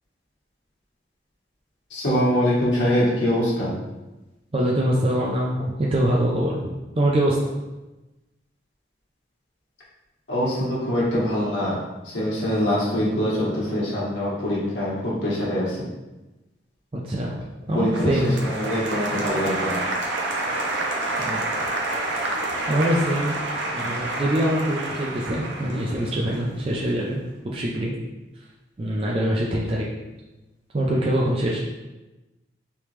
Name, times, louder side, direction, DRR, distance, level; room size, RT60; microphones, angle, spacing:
voice 1, 1.9-3.7 10.3-15.8 17.7-18.1 18.4-19.8, equal, 85° left, -6 dB, 1.2 m, -24 dB
voice 2, 4.5-7.5 16.9-17.3 17.7-18.3 21.2-21.4 22.7-23.4 23.7-27.9 28.3-28.4 28.8-29.9 30.7-31.6, right 1 dB, 30° right, -4 dB, 0.4 m, -24 dB
Applause, 17.9-26.9, right 2 dB, 90° right, 0.6 m, -28 dB
3.4 x 2.9 x 3.1 m, 1.1 s
head